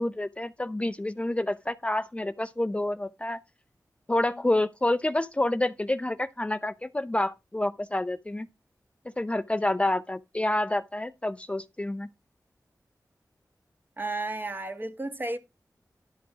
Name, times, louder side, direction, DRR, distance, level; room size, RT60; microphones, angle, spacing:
voice 1, 0.0-3.4 4.1-8.5 9.2-12.1, left 1 dB, 20° left, 0.6 m, -28 dB
voice 2, 14.0-15.4, right 2 dB, 30° right, 1.7 m, -33 dB
11.5 x 6.0 x 4.8 m
wide cardioid pair, 85°, 6 cm